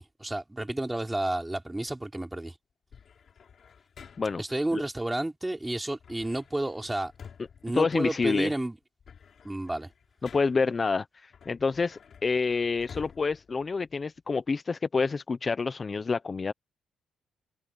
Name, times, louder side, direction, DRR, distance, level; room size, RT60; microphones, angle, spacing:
voice 1, 0.0-2.6 4.4-7.1 7.6-8.8 9.4-9.9, right 1 dB, 10° right, 3.6 m, -31 dB
sound 1, 2.9-4.6 6.0-8.5 8.8-10.8 11.3-14.3, left 7 dB, 50° left, 7.5 m, -51 dB
voice 2, 7.7-8.5 10.2-16.5, left 4 dB, 35° left, 0.9 m, -28 dB
cardioid pair, 90°, 0 cm